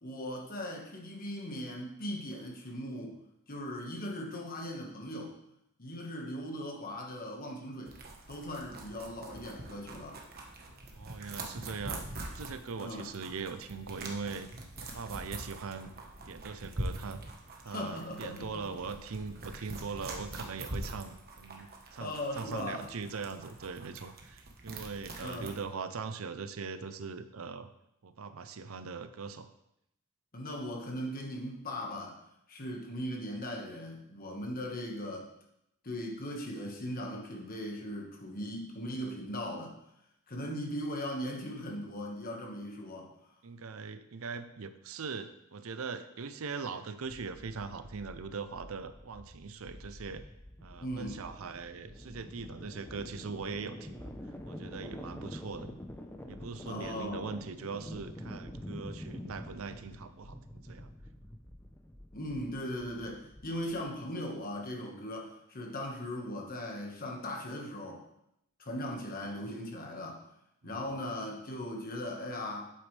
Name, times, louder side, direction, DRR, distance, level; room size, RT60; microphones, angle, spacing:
voice 1, 0.0-3.1 3.5-5.3 5.8-7.9 8.3-10.2 12.8-13.1 17.6-18.6 22.0-22.8 25.2-25.5 30.3-32.2 32.5-35.3 35.8-39.7 40.3-43.1 50.8-51.2 56.7-57.3 62.1-68.0 68.6-70.2 70.6-72.7, left 1 dB, 40° left, 0 dB, 1.5 m, -39 dB
sound 1, 7.9-25.6, right 2 dB, 45° right, 1.2 m, -44 dB
voice 2, 10.9-12.0 12.3-14.5 14.8-15.9 16.3-17.2 17.6-27.7 28.0-29.5 43.4-50.2 50.6-54.1 54.5-55.8 56.3-60.9 70.6-70.9, right 5 dB, 70° right, 11 dB, 0.6 m, -41 dB
sound 2, 47.1-64.0, equal, 10° left, 0.7 m, -47 dB
8.6 x 8.0 x 3.3 m, 0.80 s
head